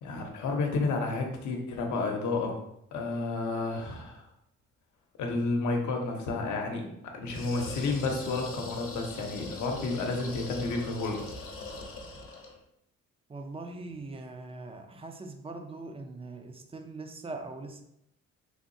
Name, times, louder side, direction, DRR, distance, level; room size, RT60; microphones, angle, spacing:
voice 1, 0.0-2.6 2.9-4.2 5.2-6.9 7.1-11.2, left 3 dB, 75° left, 2 dB, 0.8 m, -31 dB
sound 1, 7.2-12.6, left 3 dB, 45° left, 0.8 m, -42 dB
voice 2, 13.3-17.8, right 3 dB, 20° right, 5 dB, 0.4 m, -41 dB
3.5 x 2.7 x 2.6 m, 0.79 s
cardioid pair, 90°, 30 cm